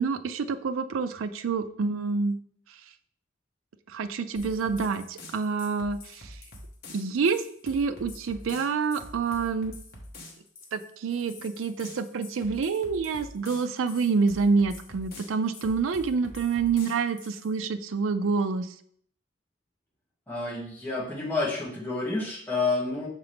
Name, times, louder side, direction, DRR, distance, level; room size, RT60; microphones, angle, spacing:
voice 1, 0.0-2.4 3.9-6.4 6.9-9.7 10.7-18.7, right 5 dB, 85° right, 10 dB, 0.4 m, -27 dB
sound 1, 4.4-17.5, left 2 dB, 50° left, 1.2 m, -46 dB
voice 2, 20.3-23.1, left 3 dB, 10° left, -5 dB, 1.4 m, -29 dB
5.9 x 4.7 x 3.4 m, 0.64 s
head